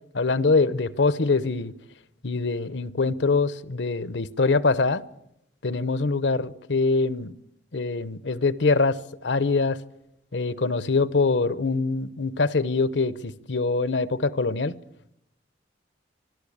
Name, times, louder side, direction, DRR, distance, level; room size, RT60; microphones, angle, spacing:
voice 1, 0.1-1.7 2.2-5.0 5.6-7.4 7.7-9.8 10.3-14.7, left 3 dB, 75° left, 0.9 m, -24 dB
25.5 x 12.5 x 8.6 m
head